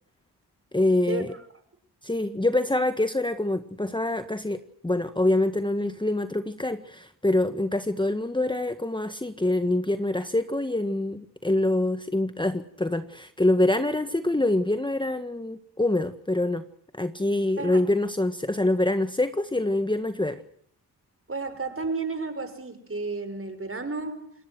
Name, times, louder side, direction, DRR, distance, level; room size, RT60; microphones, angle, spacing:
voice 1, 0.7-1.3 2.0-16.6 16.9-20.4, left 1 dB, 10° left, 9 dB, 1.7 m, -25 dB
voice 2, 21.3-24.3, right 3 dB, 35° right, 10 dB, 6.1 m, -32 dB
29.0 x 19.5 x 6.2 m, 0.63 s
cardioid pair, 55°, 40 cm